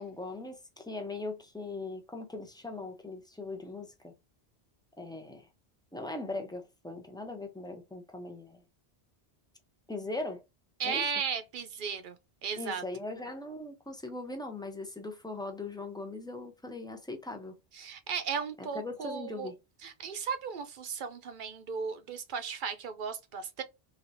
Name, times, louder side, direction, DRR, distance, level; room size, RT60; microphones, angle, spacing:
voice 1, 0.0-4.1 5.0-5.5 5.9-8.6 9.9-10.4 10.8-11.0 12.6-17.6 18.6-19.6, left 2 dB, 5° left, 0.4 m, -40 dB
voice 2, 10.8-12.2 12.4-12.8 17.7-19.5 19.8-23.6, right 6 dB, 60° right, 0.7 m, -35 dB
3.3 x 2.7 x 2.5 m
omnidirectional pair, 1.1 m